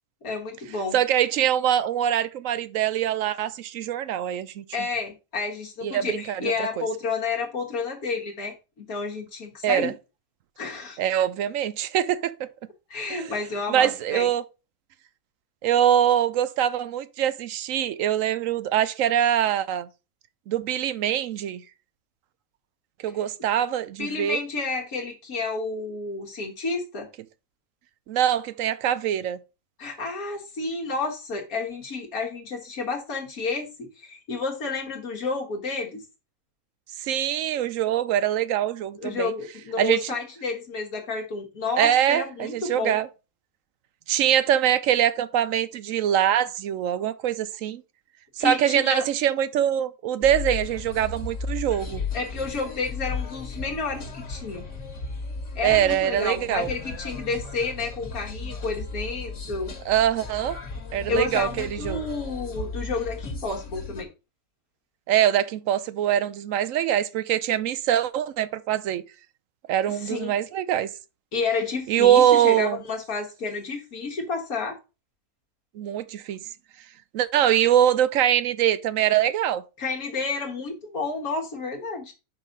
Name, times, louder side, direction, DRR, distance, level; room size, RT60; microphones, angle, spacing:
voice 1, 0.2-1.0 4.7-9.9 10.6-11.0 12.9-14.3 23.1-23.2 24.0-27.1 29.8-36.0 39.0-43.0 48.4-49.0 52.1-54.6 55.5-59.7 61.1-64.1 69.9-70.3 71.3-74.8 79.8-82.1, left 4 dB, 70° left, 1.7 m, -30 dB
voice 2, 0.9-4.6 5.8-6.8 9.6-9.9 11.0-12.5 13.1-13.3 13.7-14.4 15.6-19.9 20.5-21.6 23.0-24.4 28.1-29.4 37.0-39.3 39.8-40.1 41.8-43.1 44.1-47.8 48.4-52.0 55.6-56.7 59.9-60.6 60.9-62.0 65.1-69.0 69.7-70.9 71.9-72.8 75.7-76.4 77.1-79.6, right 10 dB, 70° right, 0.9 m, -23 dB
sound 1, 50.2-64.0, left 4 dB, 55° left, 1.8 m, -35 dB
5.6 x 5.5 x 5.1 m
omnidirectional pair, 1.6 m